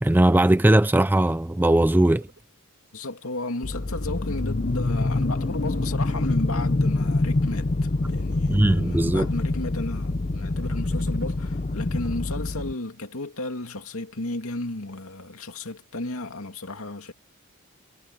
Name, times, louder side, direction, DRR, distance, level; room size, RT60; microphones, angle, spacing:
voice 1, 0.0-2.3 8.5-9.3, right 1 dB, 10° right, 0.4 m, -19 dB
sound 1, 1.6-2.4 2.9-3.1 3.4-4.7 5.0-6.2 6.8-7.3 7.9-8.6 8.9-9.4 10.3-11.6, right 2 dB, 55° right, 4.0 m, -53 dB
voice 2, 2.9-17.1, left 2 dB, 65° left, 2.7 m, -33 dB
sound 2, 3.6-12.7, left 2 dB, 35° left, 0.6 m, -26 dB
head